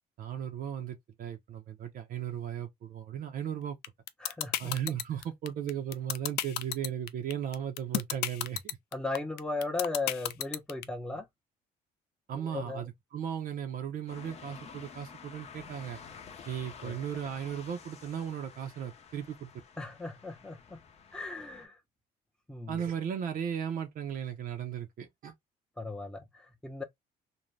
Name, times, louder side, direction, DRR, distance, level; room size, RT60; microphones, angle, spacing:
voice 1, 0.2-3.8 4.6-8.8 12.3-16.0 16.5-19.5 22.7-25.3, right 9 dB, 55° right, 0.7 m, -36 dB
sound 1, 3.8-10.8, left 13 dB, 75° left, 0.4 m, -31 dB
voice 2, 4.2-4.7 8.9-11.3 12.4-12.8 16.8-17.0 19.8-20.8 21.1-21.8 22.5-22.8 25.8-26.8, left 3 dB, 5° left, 0.7 m, -37 dB
sound 2, 14.1-21.6, left 6 dB, 40° left, 0.7 m, -50 dB
2.6 x 2.2 x 3.1 m
cardioid pair, 110°, 17 cm